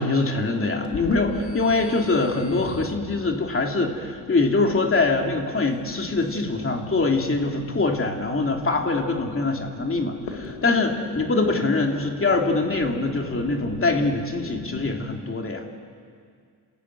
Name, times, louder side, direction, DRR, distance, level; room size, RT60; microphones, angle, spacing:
voice 1, 0.0-15.7, left 3 dB, 30° left, 2 dB, 2.8 m, -23 dB
sound 1, 0.8-14.9, left 4 dB, 80° left, 3.1 m, -39 dB
28.0 x 14.5 x 9.6 m, 2.1 s
cardioid pair, 90°, 41 cm